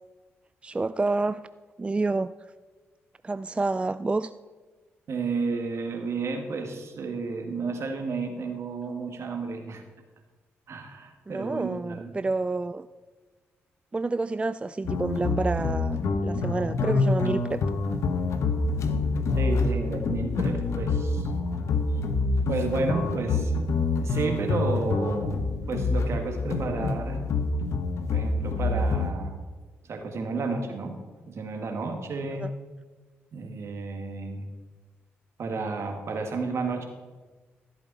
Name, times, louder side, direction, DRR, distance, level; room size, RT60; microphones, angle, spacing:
voice 1, 0.6-1.4 1.8-2.3 3.2-4.3 11.3-12.9 13.9-17.6 32.4-32.5, right 3 dB, 20° right, 13 dB, 0.3 m, -28 dB
voice 2, 5.1-9.8 10.7-12.2 19.3-21.3 22.5-23.6 24.0-25.4 25.7-27.3 28.1-29.4 29.9-31.0 31.3-32.5 33.3-34.5 35.4-36.9, right 3 dB, 60° right, 4 dB, 1.9 m, -31 dB
sound 1, 14.8-29.1, left 3 dB, 70° left, 1.0 m, -27 dB
14.5 x 8.4 x 4.1 m, 1.4 s
supercardioid pair, 55°, 5 cm